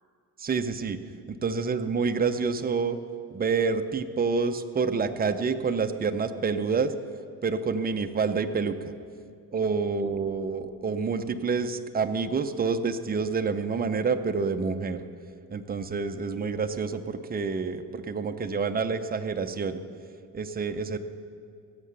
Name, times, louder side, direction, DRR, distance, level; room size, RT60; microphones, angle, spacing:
voice 1, 0.4-1.0 1.3-3.0 3.3-6.9 7.4-8.8 9.5-15.1 15.5-19.8 20.3-21.0, right 5 dB, 25° right, 8 dB, 0.6 m, -28 dB
17.0 x 7.5 x 6.8 m, 2.4 s
cardioid pair, 130°, 38 cm